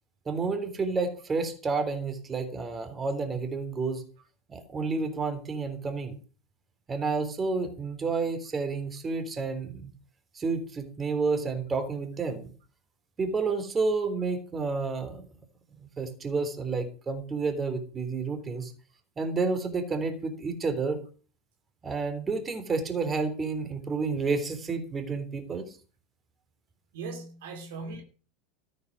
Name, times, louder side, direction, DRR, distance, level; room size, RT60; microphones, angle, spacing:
voice 1, 0.3-4.0 4.5-6.2 6.9-9.9 10.3-12.5 13.2-15.2 15.7-18.7 19.2-21.0 21.8-25.8, right 4 dB, 25° right, 3.5 m, -30 dB
voice 2, 26.9-28.0, right 3 dB, 70° right, 2.7 m, -38 dB
14.0 x 9.4 x 6.3 m
hypercardioid pair, 85°, 0 cm